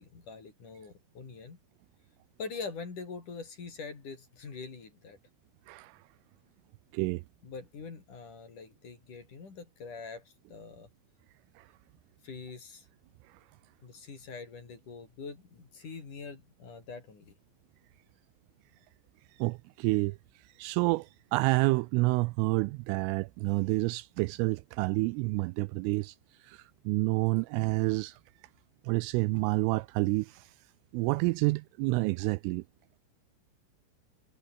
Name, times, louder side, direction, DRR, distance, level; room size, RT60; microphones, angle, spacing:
voice 1, 0.0-1.6 2.4-5.2 7.4-10.9 12.2-12.9 13.8-17.3, left 4 dB, 40° left, 5.5 m, -44 dB
voice 2, 5.7-6.0 6.9-7.2 11.6-11.7 19.4-20.2 20.6-26.2 26.4-28.2 28.8-30.5 30.9-32.6, right 24 dB, 85° right, 3.0 m, -29 dB
omnidirectional pair, 6.0 m